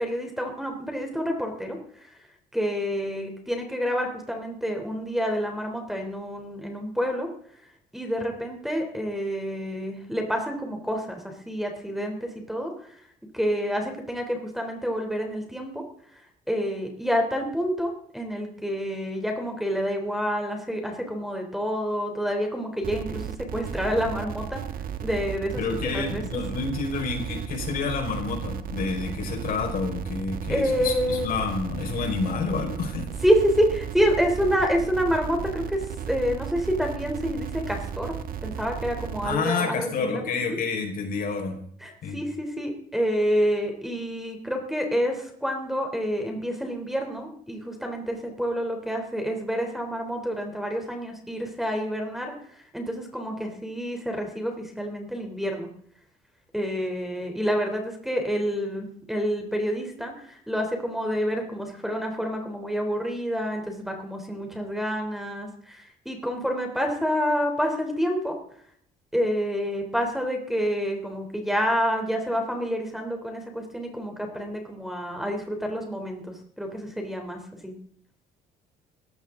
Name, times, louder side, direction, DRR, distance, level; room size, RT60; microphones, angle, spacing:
voice 1, 0.0-2.2 2.5-7.3 7.9-13.0 13.3-15.8 16.1-24.6 25.0-26.2 30.5-31.3 33.2-38.1 38.4-40.6 41.8-55.7 56.5-68.4 69.1-77.8, equal, ahead, 3 dB, 3.5 m, -28 dB
sound 1, 22.8-39.4, right 8 dB, 60° right, 1.4 m, -35 dB
voice 2, 25.6-33.1 39.2-41.6 42.0-42.2, left 4 dB, 60° left, 2 dB, 5.1 m, -29 dB
17.5 x 15.5 x 3.9 m, 0.62 s
cardioid pair, 110°, 17 cm